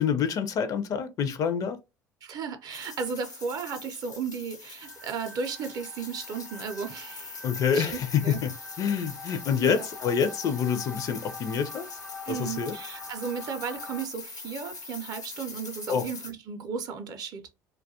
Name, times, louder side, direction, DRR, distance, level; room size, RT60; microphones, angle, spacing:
voice 1, 0.0-1.8 7.4-12.0 12.3-12.7 15.9-16.1, left 7 dB, 40° left, 0.4 m, -27 dB
voice 2, 2.2-7.4 7.7-8.0 8.2-8.4 9.6-9.9 12.3-17.4, right 6 dB, 45° right, 0.5 m, -35 dB
sound 1, 2.7-16.3, left 4 dB, 85° left, 0.7 m, -43 dB
sound 2, 4.8-14.1, left 2 dB, 90° right, 0.6 m, -45 dB
2.2 x 2.2 x 2.6 m
figure-of-eight pair, 60°, 9 cm